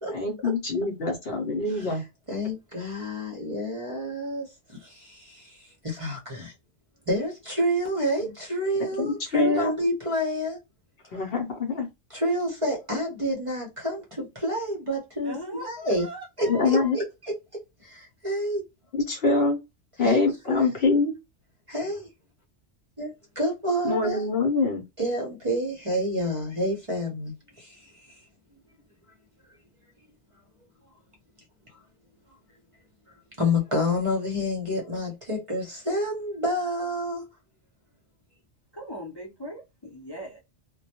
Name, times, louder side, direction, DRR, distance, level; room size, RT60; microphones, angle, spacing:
voice 1, 0.1-2.0 8.2-8.3 9.0-9.7 11.1-11.9 16.5-17.0 18.9-19.6 20.0-21.1 23.8-24.8, left 3 dB, 60° left, 0.8 m, -24 dB
voice 2, 2.3-6.5 7.1-10.6 12.1-16.0 16.4-17.3 17.8-18.7 20.0-20.2 20.5-20.8 21.7-22.1 23.0-24.2 25.0-28.2 32.3-32.4 33.4-37.3, equal, 35° right, 0.7 m, -29 dB
voice 3, 15.2-16.9 38.7-40.4, equal, 30° left, 0.5 m, -39 dB
2.2 x 2.1 x 2.7 m
omnidirectional pair, 1.2 m